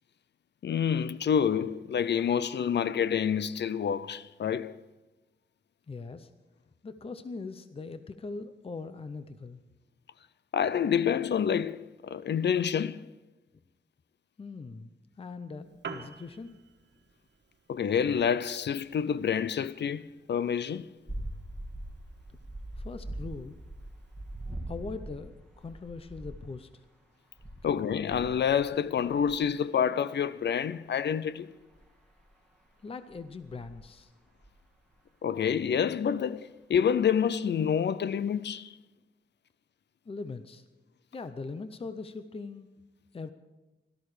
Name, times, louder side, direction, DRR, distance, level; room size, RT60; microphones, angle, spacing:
voice 1, 0.6-4.8 10.5-13.0 17.7-20.0 20.3-20.9 27.6-31.5 35.2-38.8, left 8 dB, 75° left, 0.5 m, -28 dB
voice 2, 5.9-6.3 6.8-9.6 14.4-14.9 15.2-16.6 22.8-23.6 24.7-26.8 27.6-27.8 32.8-34.1 40.1-40.7 41.1-42.7 43.1-43.3, left 4 dB, 30° left, 0.6 m, -41 dB
Piano, 15.6-24.6, right 5 dB, 75° right, 1.4 m, -51 dB
sound 1, 21.1-26.5 27.4-29.4 31.7-32.3 33.1-34.0 34.4-34.7, right 1 dB, 5° left, 2.5 m, -42 dB
17.5 x 13.0 x 4.9 m
wide cardioid pair, 175°, 18 cm